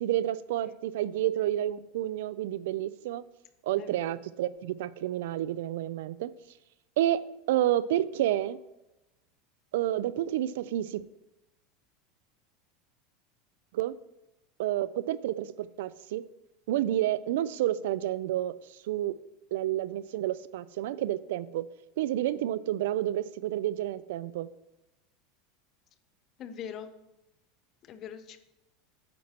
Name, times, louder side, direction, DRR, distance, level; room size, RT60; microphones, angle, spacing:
voice 1, 0.0-3.2 3.6-6.3 7.0-7.2 7.5-8.6 9.7-11.0 13.7-13.9 14.6-16.2 16.7-18.5 18.9-19.1 19.5-21.7 22.0-24.5, right 13 dB, 80° right, 17 dB, 0.3 m, -29 dB
voice 2, 3.8-4.2 26.4-26.9 27.8-28.4, left 8 dB, 35° left, 11 dB, 0.5 m, -42 dB
9.5 x 7.3 x 2.8 m, 0.97 s
supercardioid pair, 145°, 0 cm